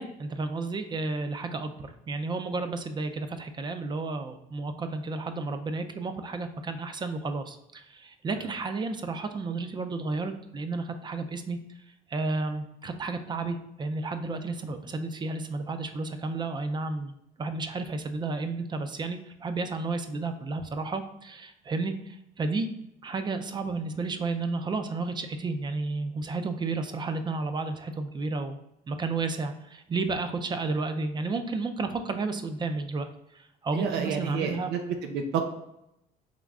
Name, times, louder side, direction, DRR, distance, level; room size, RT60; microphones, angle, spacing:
voice 1, 0.0-11.6 12.1-22.7 23.0-28.6 28.9-33.1 33.3-34.7, right 3 dB, 25° right, 8 dB, 0.4 m, -32 dB
voice 2, 33.7-35.5, right 6 dB, 85° right, 5 dB, 0.5 m, -30 dB
3.6 x 3.1 x 3.5 m, 0.81 s
cardioid pair, 110°, 17 cm